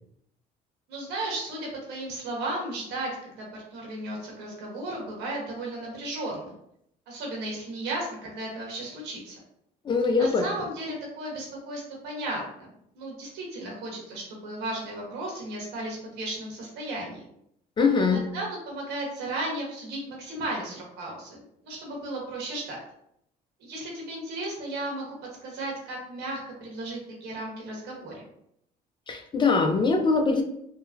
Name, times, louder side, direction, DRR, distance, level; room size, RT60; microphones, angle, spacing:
voice 1, 0.9-3.5 3.7-6.5 7.1-9.3 10.1-17.2 18.0-22.8 23.6-25.1 25.4-28.3, right 1 dB, 85° right, -2 dB, 1.2 m, -35 dB
voice 2, 9.9-10.5 17.8-18.2 29.1-30.4, left 4 dB, 30° left, 4 dB, 0.4 m, -22 dB
3.7 x 2.0 x 2.6 m, 0.73 s
cardioid pair, 110°, 17 cm